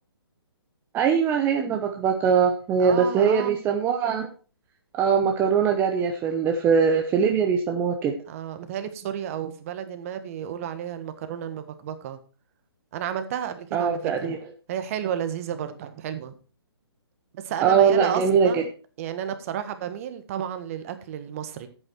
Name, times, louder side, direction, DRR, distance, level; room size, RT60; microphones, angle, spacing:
voice 1, 0.9-4.3 5.0-8.1 13.7-14.4 17.6-18.6, right 6 dB, 15° right, 3 dB, 0.9 m, -21 dB
voice 2, 2.8-3.6 8.3-12.2 12.9-14.3 14.7-16.3 17.3-18.7 19.0-21.7, right 9 dB, 35° right, 10 dB, 1.4 m, -32 dB
10.5 x 8.5 x 4.5 m, 0.36 s
hypercardioid pair, 145°, 13 cm